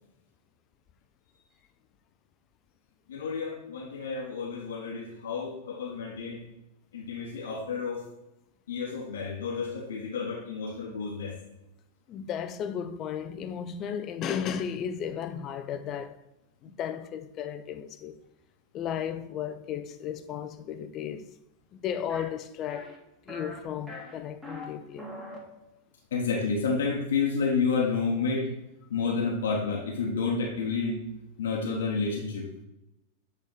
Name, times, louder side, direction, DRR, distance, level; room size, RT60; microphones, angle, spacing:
voice 1, 3.1-6.4 6.9-8.0 8.7-11.4 26.1-28.5 28.9-31.0 31.4-32.5, left 4 dB, 65° left, 1.0 m, -30 dB
voice 2, 12.1-16.2 16.6-18.2 18.7-21.3 21.7-23.0 23.3-25.1, left 8 dB, 35° left, 0.4 m, -34 dB
sound 1, 22.1-22.2 22.7-23.0 23.3-23.6 23.9-24.6 25.0-25.4, left 1 dB, 10° right, 1.7 m, -41 dB
8.1 x 3.6 x 3.8 m
figure-of-eight pair, 90°, 0 cm